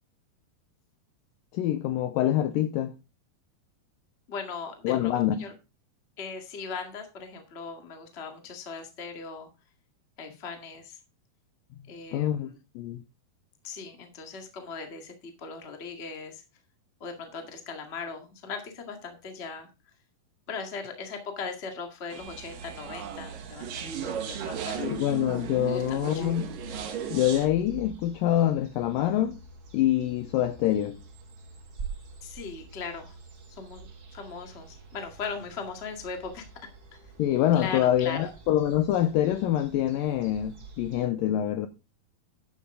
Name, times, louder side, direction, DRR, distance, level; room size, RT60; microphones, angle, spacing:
voice 1, 1.5-2.9 4.8-5.5 12.1-13.0 24.8-26.4 27.1-29.4 29.7-31.0 37.2-41.7, left 12 dB, 85° left, 2.0 m, -25 dB
voice 2, 4.3-5.5 6.2-9.5 10.2-11.0 11.9-12.6 13.6-16.4 17.0-19.7 20.5-25.1 25.6-26.3 32.2-33.2 33.5-36.4 37.5-38.3, left 5 dB, 30° left, 1.1 m, -39 dB
sound 1, 22.1-27.5, right 8 dB, 60° right, 2.9 m, -36 dB
sound 2, 22.2-41.1, right 4 dB, 40° right, 1.4 m, -46 dB
11.0 x 8.6 x 3.8 m
omnidirectional pair, 4.7 m